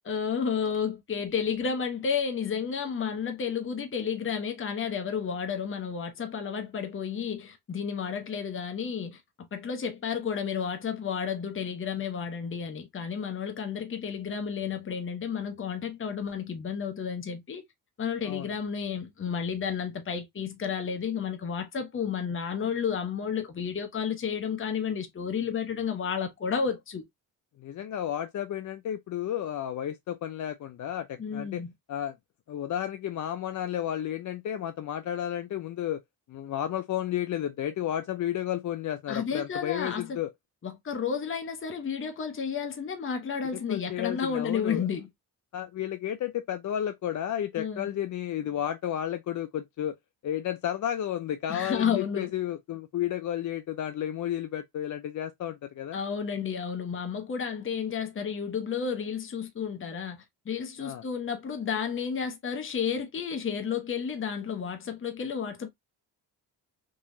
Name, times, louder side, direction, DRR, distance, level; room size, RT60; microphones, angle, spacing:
voice 1, 0.1-17.6 18.0-27.0 31.2-31.7 39.1-40.2 40.6-45.1 47.6-47.9 51.5-52.3 55.9-60.2 60.5-65.7, left 7 dB, 30° left, 0.9 m, -31 dB
voice 2, 27.6-31.6 31.9-32.2 32.5-36.0 36.3-40.3 43.5-44.9 45.5-50.0 50.2-56.0 60.8-61.0, left 11 dB, 50° left, 0.5 m, -32 dB
3.8 x 3.0 x 2.6 m
cardioid pair, 80°, 40 cm